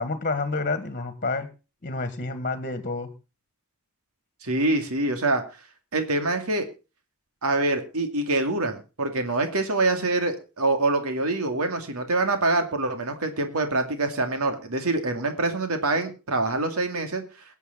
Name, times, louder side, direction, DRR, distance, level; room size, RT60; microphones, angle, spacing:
voice 1, 0.0-1.5 1.8-3.1, left 3 dB, 35° left, 10 dB, 1.8 m, -29 dB
voice 2, 4.4-5.4 5.9-6.7 7.4-17.2, right 2 dB, 80° right, 6 dB, 2.3 m, -25 dB
22.0 x 8.3 x 3.9 m, 0.30 s
head